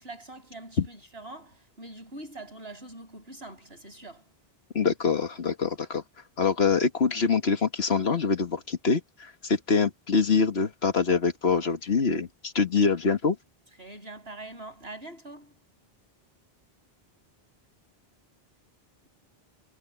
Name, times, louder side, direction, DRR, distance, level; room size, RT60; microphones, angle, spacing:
voice 1, 0.0-4.2 13.8-15.5, right 2 dB, 80° right, 7.4 m, -43 dB
voice 2, 4.7-6.0 6.4-13.4, left 5 dB, 80° left, 1.9 m, -25 dB
omnidirectional pair, 1.0 m